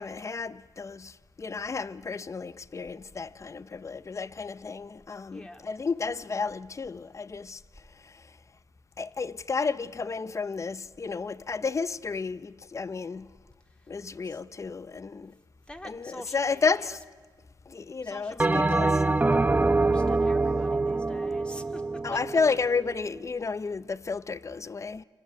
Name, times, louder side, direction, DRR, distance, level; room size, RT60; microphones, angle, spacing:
voice 1, 0.0-7.6 8.0-8.2 9.0-13.3 13.9-15.4 15.8-17.0 17.7-19.0 22.0-25.0, left 4 dB, 35° left, 0.8 m, -32 dB
voice 2, 5.3-5.7 14.3-14.4 15.7-17.0 18.0-21.8 22.1-22.2, left 1 dB, 10° left, 2.5 m, -46 dB
Bell, 18.4-23.0, right 3 dB, 20° right, 0.7 m, -25 dB
28.5 x 25.0 x 8.2 m
cardioid pair, 70°, 9 cm